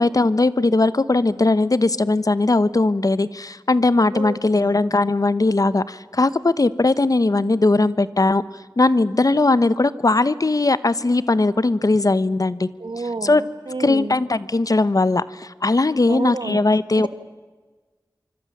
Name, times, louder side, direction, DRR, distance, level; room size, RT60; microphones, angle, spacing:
voice 1, 0.0-8.4 8.8-12.7 13.2-13.4 13.8-17.1, left 2 dB, 50° left, 16 dB, 1.1 m, -19 dB
voice 2, 4.1-4.7 12.8-14.2 16.1-16.6 16.9-17.1, right 3 dB, 85° right, 11 dB, 1.7 m, -30 dB
25.5 x 25.0 x 7.4 m, 1.3 s
wide cardioid pair, 45°, 8 cm